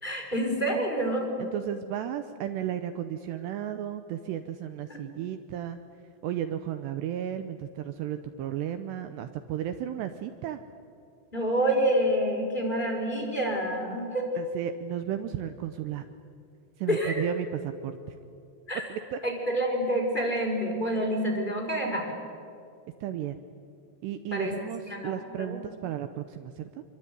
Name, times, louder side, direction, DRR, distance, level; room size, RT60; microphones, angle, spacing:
voice 1, 0.0-1.3 4.9-5.2 11.3-14.2 16.9-17.2 18.7-18.8 19.2-22.1 24.3-24.5 24.9-25.6, equal, 10° left, 0 dB, 4.8 m, -28 dB
voice 2, 1.4-5.8 6.2-10.6 14.4-16.0 16.8-18.0 18.9-19.2 23.0-23.4 24.0-26.8, right 10 dB, 75° right, 9 dB, 2.8 m, -34 dB
26.5 x 23.5 x 9.4 m, 2.4 s
omnidirectional pair, 5.4 m